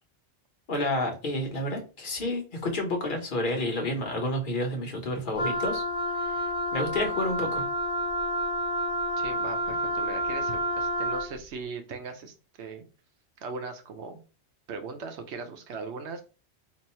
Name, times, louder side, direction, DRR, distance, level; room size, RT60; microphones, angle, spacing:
voice 1, 0.7-5.8 6.2-6.4 6.7-7.6, left 1 dB, 50° left, 2 dB, 1.1 m, -30 dB
Wind instrument woodwind instrument, 5.3-11.3, equal, 5° right, 1.0 m, -29 dB
voice 2, 9.2-12.8 13.4-14.2 14.7-16.2, right 4 dB, 80° right, 6 dB, 1.0 m, -39 dB
3.0 x 2.6 x 4.2 m, 0.33 s
omnidirectional pair, 1.1 m